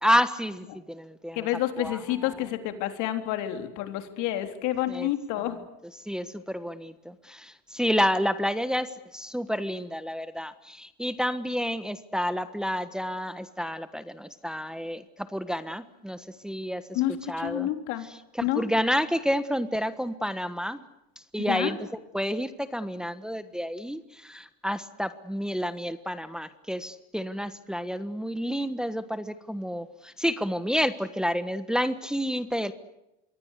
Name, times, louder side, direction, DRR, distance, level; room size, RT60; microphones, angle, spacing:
voice 1, 0.0-1.5 1.8-2.3 4.9-5.1 6.0-16.8 17.3-17.7 18.1-20.8 21.3-21.8 22.1-32.7, equal, ahead, 11 dB, 1.4 m, -29 dB
voice 2, 1.3-5.6 16.9-18.1 18.4-18.6 21.5-21.7, left 13 dB, 70° left, 7 dB, 3.7 m, -29 dB
26.5 x 23.5 x 8.3 m, 0.90 s
supercardioid pair, 115°, 31 cm